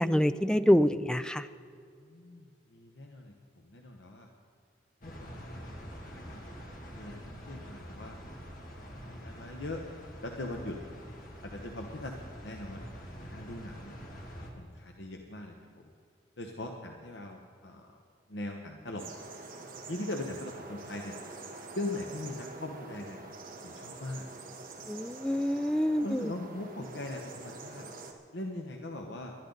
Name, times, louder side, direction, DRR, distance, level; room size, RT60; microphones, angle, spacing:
voice 1, 0.0-1.5 24.9-26.3, equal, 5° left, 12 dB, 0.4 m, -26 dB
voice 2, 2.0-4.3 5.0-6.4 7.0-8.2 8.7-9.8 10.2-10.8 11.4-12.8 13.3-14.0 14.6-15.9 16.4-18.0 18.3-19.0 19.9-21.2 21.7-23.2 23.6-24.2 26.0-27.9 28.3-29.3, left 2 dB, 75° left, 2 dB, 1.1 m, -41 dB
sound 1, 5.0-14.5, equal, 50° left, 2.3 m, -45 dB
sound 2, 19.0-28.1, right 3 dB, 50° right, 1.6 m, -46 dB
21.0 x 12.0 x 4.0 m, 2.3 s
head